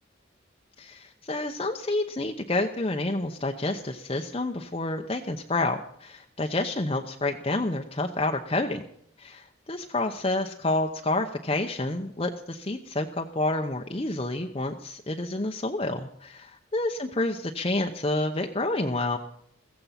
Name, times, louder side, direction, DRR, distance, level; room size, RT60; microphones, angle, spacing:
voice 1, 0.8-8.8 9.2-19.2, left 2 dB, 30° left, 3 dB, 0.8 m, -29 dB
16.0 x 15.0 x 5.8 m, 0.67 s
head